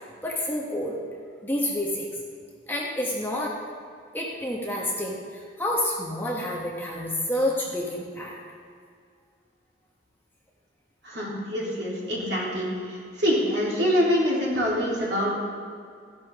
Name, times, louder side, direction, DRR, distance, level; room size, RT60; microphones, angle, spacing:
voice 1, 0.2-1.0 1.4-2.1 2.7-3.6 4.1-8.4 11.2-11.3, left 1 dB, 10° left, -3 dB, 1.3 m, -29 dB
voice 2, 11.0-15.3, equal, 60° right, -6 dB, 3.4 m, -25 dB
14.0 x 11.0 x 3.6 m, 2.2 s
head